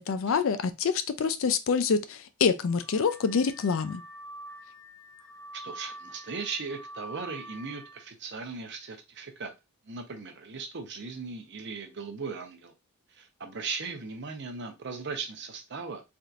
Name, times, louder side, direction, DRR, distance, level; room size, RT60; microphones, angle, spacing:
voice 1, 0.0-4.0, left 5 dB, 65° left, 0.4 m, -26 dB
Car / Alarm, 2.6-8.1, right 1 dB, 5° left, 0.5 m, -46 dB
voice 2, 5.5-9.5 9.8-12.7 13.1-16.0, right 4 dB, 55° right, 0.7 m, -38 dB
3.4 x 2.8 x 2.4 m
head